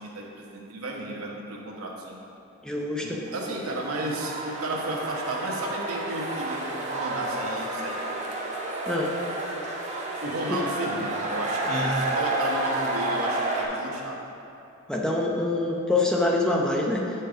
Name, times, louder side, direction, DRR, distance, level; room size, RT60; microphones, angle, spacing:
voice 1, 0.0-2.2 3.0-6.6 6.9-8.2 10.2-14.3, right 1 dB, 85° right, -2 dB, 1.1 m, -33 dB
voice 2, 2.6-3.2 8.9-9.1 10.5-10.6 11.7-12.1 14.9-17.1, left 2 dB, 5° left, -1 dB, 0.5 m, -25 dB
sound 1, 3.3-13.7, right 2 dB, 35° right, 0.8 m, -30 dB
7.9 x 4.4 x 4.9 m, 2.8 s
head